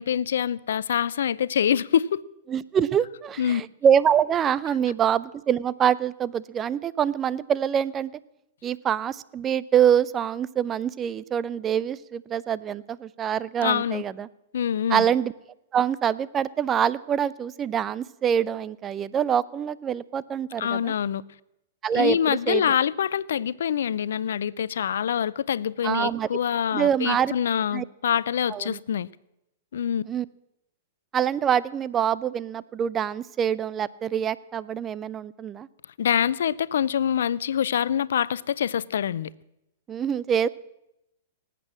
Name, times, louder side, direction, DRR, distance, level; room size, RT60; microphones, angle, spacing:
voice 1, 0.0-2.2 3.4-3.6 13.6-14.0 14.5-15.1 20.6-21.2 21.9-29.1 29.7-30.0 36.0-39.3, left 9 dB, 70° left, 0.5 m, -25 dB
voice 2, 2.5-8.1 8.6-14.3 14.9-15.3 15.7-20.9 21.8-22.7 25.8-26.3 26.7-27.3 27.7-27.8 28.5-28.8 30.0-30.3 31.1-35.7 39.9-40.5, right 8 dB, 25° right, 0.5 m, -25 dB
18.5 x 8.4 x 7.4 m
hypercardioid pair, 110°, 0 cm